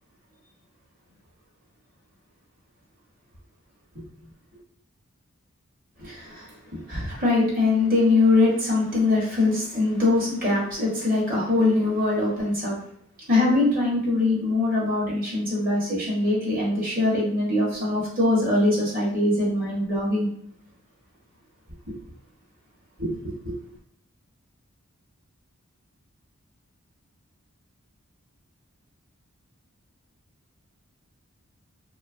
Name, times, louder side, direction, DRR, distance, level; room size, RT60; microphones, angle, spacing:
voice 1, 6.0-12.8 13.3-20.3 21.9-22.0 23.0-23.6, left 2 dB, 40° right, -4 dB, 0.8 m, -23 dB
2.6 x 2.2 x 2.4 m, 0.65 s
head